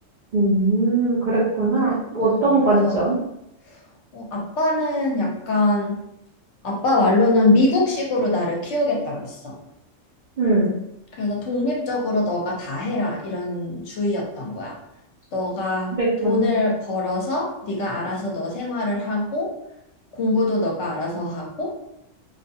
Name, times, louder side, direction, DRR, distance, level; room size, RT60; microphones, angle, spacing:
voice 1, 0.3-3.2 10.4-10.7 16.0-16.5, right 2 dB, 55° right, -7 dB, 0.5 m, -20 dB
voice 2, 1.5-3.1 3.6-3.8 4.1-6.0 6.6-9.6 11.1-14.7 15.3-15.9 16.2-19.5 20.1-21.7, left 2 dB, 65° left, -2 dB, 0.9 m, -23 dB
2.4 x 2.2 x 2.7 m, 0.82 s
omnidirectional pair, 1.3 m